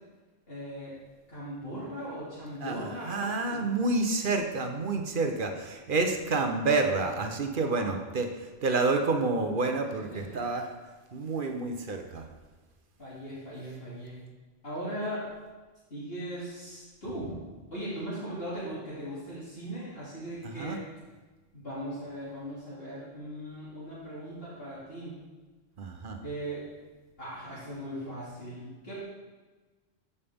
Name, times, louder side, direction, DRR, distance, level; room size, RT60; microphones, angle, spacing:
voice 1, 0.5-0.9 1.3-3.7 7.6-8.0 9.9-10.4 13.0-14.2 14.6-15.3 15.9-17.3 17.7-20.8 21.5-25.1 26.2-26.6 27.2-29.0, right 1 dB, 50° left, -10 dB, 2.7 m, -39 dB
voice 2, 2.6-8.3 8.6-10.7 11.1-12.2 20.5-20.8 25.8-26.2, right 3 dB, 50° right, 5 dB, 0.9 m, -29 dB
13.5 x 5.6 x 3.5 m, 1.3 s
omnidirectional pair, 1.3 m